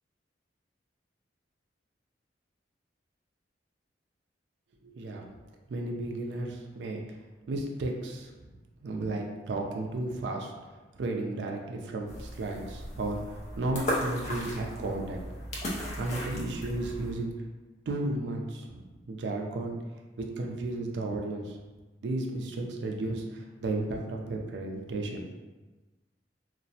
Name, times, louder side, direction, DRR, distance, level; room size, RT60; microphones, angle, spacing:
voice 1, 4.8-5.2 5.7-7.0 7.5-8.3 8.8-10.5 11.0-15.2 16.0-17.3 17.9-19.8 20.2-21.6 22.0-25.2, right 2 dB, 70° right, 2 dB, 0.4 m, -33 dB
sound 1, 12.1-17.1, equal, 40° left, 0.5 m, -36 dB
2.5 x 2.0 x 2.6 m, 1.2 s
head